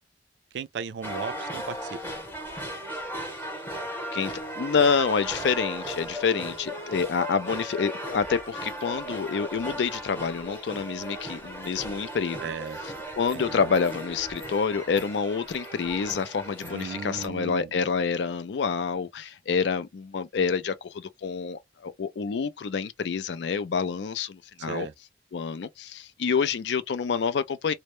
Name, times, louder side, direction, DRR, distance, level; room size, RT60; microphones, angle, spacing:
voice 1, 0.5-2.0 12.4-12.8 13.3-13.7 16.7-17.7 24.6-24.9, right 6 dB, 75° right, 0.3 m, -36 dB
sound 1, 1.0-17.3, right 1 dB, 10° left, 0.8 m, -37 dB
voice 2, 4.1-12.4 13.2-24.9 25.3-27.7, left 5 dB, 75° left, 0.4 m, -27 dB
2.1 x 2.0 x 2.9 m
head